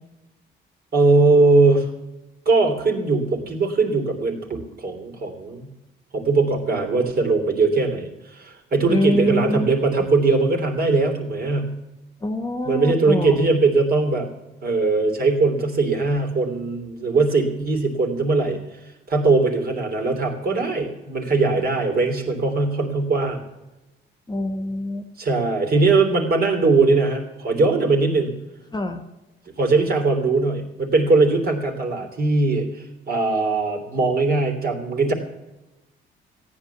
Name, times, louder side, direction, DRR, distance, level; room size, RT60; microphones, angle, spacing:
voice 1, 0.9-1.9 2.4-5.7 6.1-11.7 12.6-14.3 14.6-23.4 25.2-28.4 29.6-35.1, right 3 dB, 50° right, 3 dB, 3.1 m, -20 dB
voice 2, 8.9-9.7 12.2-13.5 24.3-25.1 28.7-29.0, left 1 dB, 20° left, 8 dB, 1.3 m, -25 dB
14.0 x 9.6 x 7.0 m, 1.0 s
cardioid pair, 90°, 20 cm